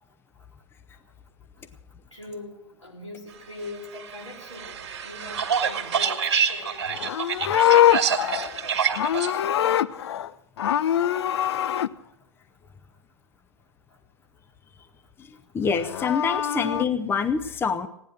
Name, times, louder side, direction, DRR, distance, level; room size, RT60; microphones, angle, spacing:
voice 1, 2.1-6.9, left 2 dB, 90° left, -4 dB, 4.3 m, -41 dB
sound 1, 4.0-9.3, right 7 dB, 65° right, 2.0 m, -27 dB
Livestock farm animals working animals, 6.9-10.3 10.6-11.9 15.7-16.8, left 11 dB, 60° left, 0.5 m, -23 dB
voice 2, 15.2-17.9, left 6 dB, 15° left, 10 dB, 0.7 m, -26 dB
16.5 x 10.0 x 6.2 m, 0.79 s
figure-of-eight pair, 95°, 15 cm